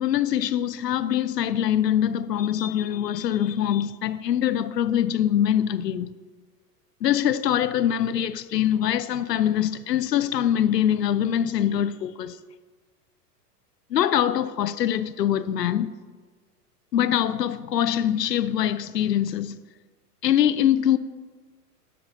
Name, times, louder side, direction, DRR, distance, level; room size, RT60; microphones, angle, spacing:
voice 1, 0.0-6.1 7.0-12.4 13.9-15.9 16.9-19.6 20.2-21.0, left 10 dB, 85° left, 0.6 m, -23 dB
10.0 x 6.7 x 3.9 m
hypercardioid pair, 105°, 48 cm